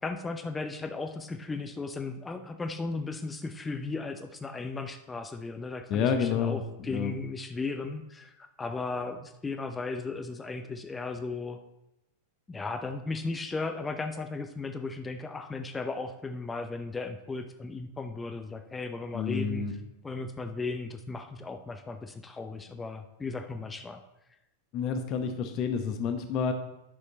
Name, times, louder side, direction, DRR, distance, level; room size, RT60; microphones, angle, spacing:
voice 1, 0.0-11.6 12.5-19.8 20.0-24.0, left 3 dB, 15° left, 6 dB, 0.7 m, -36 dB
voice 2, 5.9-6.6 6.9-7.1 19.1-19.7 24.7-26.5, left 6 dB, 40° left, 7 dB, 1.2 m, -29 dB
10.0 x 6.5 x 4.1 m, 0.91 s
figure-of-eight pair, 90°, 0 cm